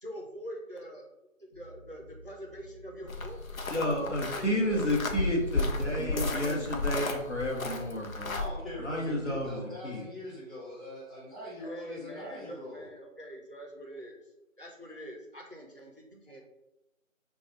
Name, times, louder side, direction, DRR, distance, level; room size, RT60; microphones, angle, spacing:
voice 1, 0.0-1.0 1.6-3.4 3.7-4.9 6.1-7.8 11.6-14.2 14.6-16.4, equal, 45° right, 1 dB, 0.5 m, -44 dB
sound 1, 1.5-9.5, left 2 dB, 40° left, 1.3 m, -49 dB
sound 2, 3.1-8.5, left 3 dB, 80° left, 0.7 m, -33 dB
voice 2, 3.7-8.4 8.8-10.0, left 1 dB, 60° left, -1 dB, 1.1 m, -31 dB
voice 3, 8.3-12.9, left 1 dB, ahead, -12 dB, 0.8 m, -42 dB
3.5 x 2.3 x 4.3 m, 0.94 s
figure-of-eight pair, 170°, 41 cm